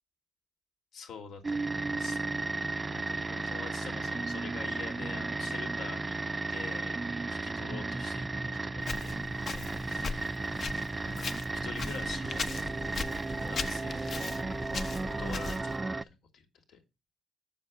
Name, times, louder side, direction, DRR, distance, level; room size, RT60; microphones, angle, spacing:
voice 1, 0.9-6.2 6.5-7.0 7.3-9.2 9.5-10.5 11.0-12.5 13.5-14.6 15.0-16.8, left 6 dB, 80° left, 4 dB, 2.6 m, -46 dB
sound 1, 1.4-16.0, right 3 dB, 25° right, 0.4 m, -34 dB
Walk footsteps, 8.8-15.8, left 4 dB, 50° left, 0.9 m, -39 dB
7.9 x 7.3 x 5.2 m, 0.26 s
cardioid pair, 105°, 0 cm